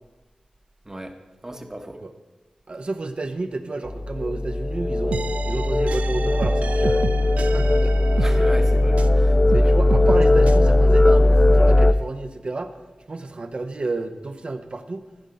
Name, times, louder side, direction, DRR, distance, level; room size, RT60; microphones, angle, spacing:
voice 1, 0.8-1.2 1.4-2.1 8.2-9.7, right 1 dB, 25° right, 5 dB, 1.0 m, -36 dB
voice 2, 2.7-7.0 7.5-7.9 9.5-12.8 13.1-15.0, right 2 dB, 55° right, 8 dB, 0.7 m, -30 dB
sound 1, 3.9-11.9, left 1 dB, 25° left, 0.3 m, -18 dB
sound 2, 5.1-9.2 9.5-10.6, right 5 dB, 90° right, 0.3 m, -31 dB
14.0 x 5.5 x 5.1 m, 1.2 s
cardioid pair, 55°, 2 cm